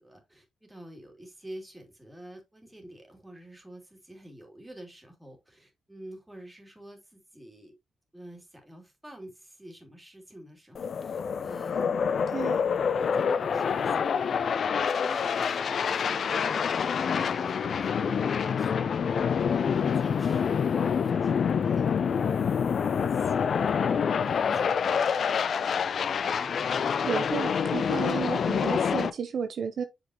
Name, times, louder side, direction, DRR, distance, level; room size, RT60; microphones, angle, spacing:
voice 1, 0.0-7.8 8.1-11.9 12.9-14.3 14.8-16.6 17.0-19.0 19.5-22.1 22.5-23.6 24.1-25.1, right 1 dB, 10° right, 3.0 m, -48 dB
sound 1, 10.7-29.1, left 6 dB, 60° left, 0.5 m, -27 dB
voice 2, 12.3-12.6 27.0-29.8, right 7 dB, 65° right, 0.7 m, -32 dB
6.4 x 5.3 x 3.0 m
supercardioid pair, 60°, 0 cm